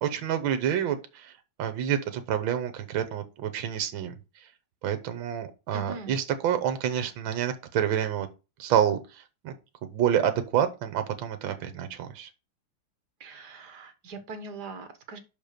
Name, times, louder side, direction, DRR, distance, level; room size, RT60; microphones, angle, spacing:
voice 1, 0.0-1.3 1.6-4.1 4.8-8.3 8.6-9.5 9.9-12.3, right 9 dB, 70° right, 1.7 m, -28 dB
voice 2, 5.7-6.1 13.2-15.2, right 3 dB, 55° right, 1.7 m, -41 dB
5.8 x 5.3 x 6.6 m
omnidirectional pair, 2.4 m